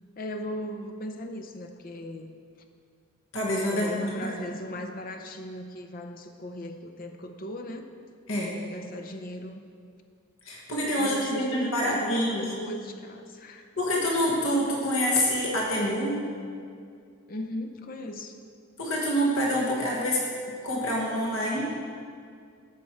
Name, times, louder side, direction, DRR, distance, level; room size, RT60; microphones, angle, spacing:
voice 1, 0.2-2.3 3.7-7.9 8.6-9.6 11.0-13.7 17.3-18.4, left 1 dB, 40° left, 5 dB, 0.7 m, -38 dB
voice 2, 3.3-4.3 8.3-8.6 10.4-12.5 13.8-16.2 18.8-20.3 20.6-21.6, equal, 75° left, -3 dB, 1.6 m, -26 dB
14.0 x 6.2 x 4.6 m, 2.3 s
head